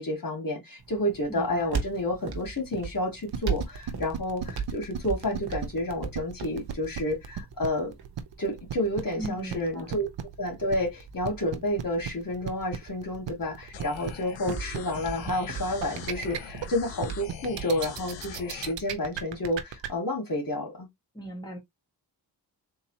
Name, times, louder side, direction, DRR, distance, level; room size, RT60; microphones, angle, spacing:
voice 1, 0.0-7.9 8.4-10.1 10.4-20.9, left 1 dB, 50° left, 2.1 m, -30 dB
sound 1, 0.8-17.8, right 5 dB, 60° right, 1.2 m, -40 dB
voice 2, 1.3-1.8 9.2-10.0 21.1-21.6, equal, 10° left, 1.6 m, -38 dB
sound 2, 3.3-19.9, right 9 dB, 75° right, 0.8 m, -35 dB
sound 3, 13.7-18.7, left 8 dB, 80° left, 0.8 m, -43 dB
3.8 x 2.8 x 2.9 m
cardioid pair, 50°, 44 cm